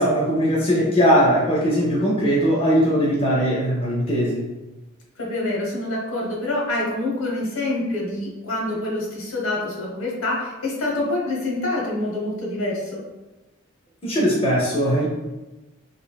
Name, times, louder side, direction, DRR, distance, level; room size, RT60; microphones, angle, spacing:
voice 1, 0.0-4.4 14.0-15.1, equal, 25° left, -4 dB, 0.5 m, -20 dB
voice 2, 5.2-13.0, left 2 dB, 85° left, -3 dB, 1.0 m, -26 dB
3.3 x 2.7 x 2.3 m, 1.1 s
head